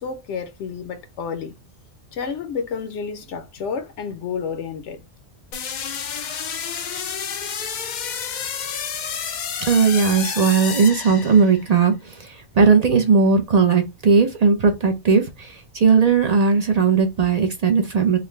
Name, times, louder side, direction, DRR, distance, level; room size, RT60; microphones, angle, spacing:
voice 1, 0.0-1.5 2.1-5.0, left 6 dB, 80° left, 0.9 m, -30 dB
sound 1, 5.5-11.7, left 7 dB, 55° left, 0.5 m, -30 dB
voice 2, 9.6-18.2, right 5 dB, 50° right, 0.5 m, -18 dB
3.7 x 2.1 x 3.1 m
omnidirectional pair, 1.2 m